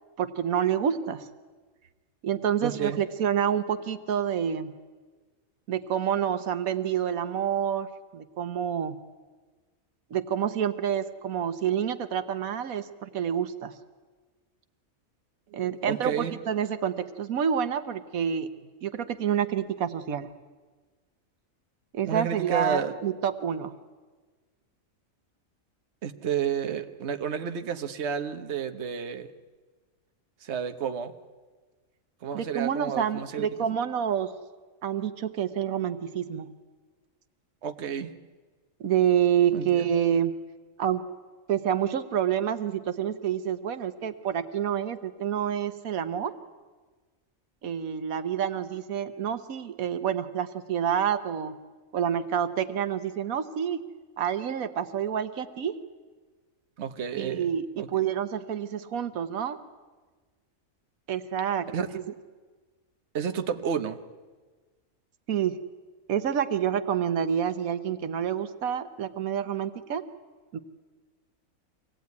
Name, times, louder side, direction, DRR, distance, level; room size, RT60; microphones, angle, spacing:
voice 1, 0.2-1.3 2.2-4.7 5.7-9.0 10.1-13.7 15.5-18.5 18.8-20.3 21.9-23.7 32.3-34.3 34.8-36.5 38.8-40.4 40.8-41.1 41.5-46.3 47.6-51.6 51.9-53.8 54.2-55.8 57.2-59.6 61.1-62.0 65.3-65.6 66.1-70.0 70.5-70.6, right 9 dB, 90° right, 10 dB, 1.4 m, -28 dB
voice 2, 2.6-3.0 15.5-16.3 22.1-22.9 26.0-29.3 30.4-31.1 32.2-33.5 37.6-38.1 39.5-39.8 56.8-57.9 61.7-61.9 63.1-64.0, right 7 dB, 55° right, 7 dB, 1.3 m, -31 dB
24.5 x 18.0 x 9.5 m, 1.4 s
omnidirectional pair, 1.4 m